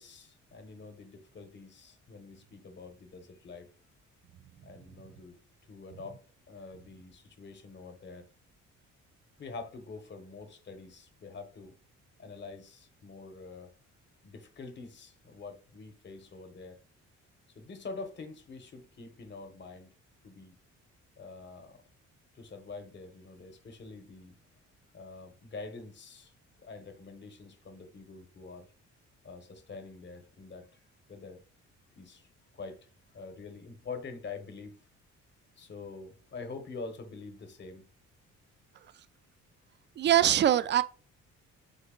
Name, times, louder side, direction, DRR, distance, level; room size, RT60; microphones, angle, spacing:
voice 1, 0.0-3.7 4.6-5.4 5.7-6.2 6.5-8.3 9.4-11.8 12.2-13.7 14.2-16.8 17.5-19.9 20.2-20.6 21.2-21.8 22.3-24.4 24.9-26.3 26.6-28.7 29.2-30.7 31.1-31.4 31.9-32.8 33.1-34.8 35.6-37.8, left 4 dB, 35° left, 0.9 m, -46 dB
voice 2, 40.0-40.8, right 11 dB, 35° right, 0.4 m, -23 dB
3.9 x 3.4 x 3.7 m
cardioid pair, 90°, 30 cm